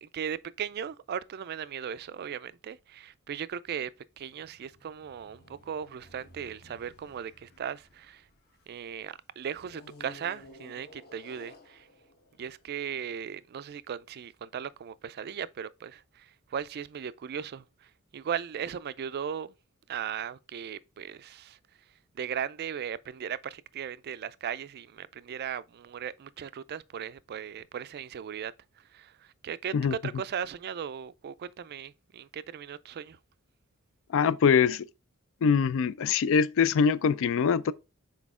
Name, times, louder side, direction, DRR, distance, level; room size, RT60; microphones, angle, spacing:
voice 1, 0.0-3.9 4.2-8.3 8.7-11.9 12.4-19.5 19.9-21.6 22.1-33.2, right 8 dB, 45° right, 0.3 m, -37 dB
sound 1, 4.2-8.9 9.7-13.1, left 2 dB, 45° left, 1.3 m, -54 dB
voice 2, 34.1-34.9 35.4-37.7, left 6 dB, 60° left, 0.4 m, -23 dB
6.1 x 4.4 x 3.6 m
head